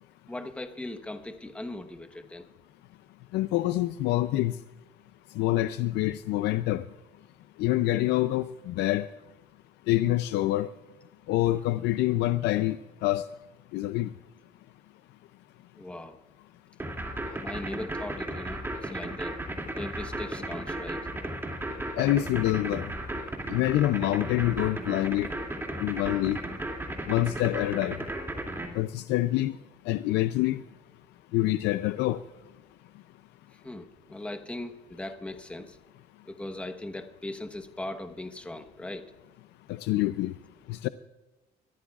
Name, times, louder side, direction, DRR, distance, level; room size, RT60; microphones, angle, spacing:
voice 1, 0.3-2.4 15.8-16.2 17.3-19.4 19.8-21.0 33.5-35.8 36.3-39.1, left 1 dB, 5° left, 1.1 m, -39 dB
voice 2, 3.3-4.6 5.4-6.8 7.6-9.1 9.9-10.7 11.3-13.3 13.7-14.1 22.0-22.9 23.5-25.3 25.8-26.4 27.1-28.0 28.7-29.6 29.9-30.6 31.3-32.2 39.7-40.3 40.7-40.9, left 15 dB, 85° left, 0.5 m, -26 dB
sound 1, 16.8-28.7, right 1 dB, 15° right, 2.5 m, -34 dB
23.0 x 14.0 x 2.4 m
cardioid pair, 110°, 17 cm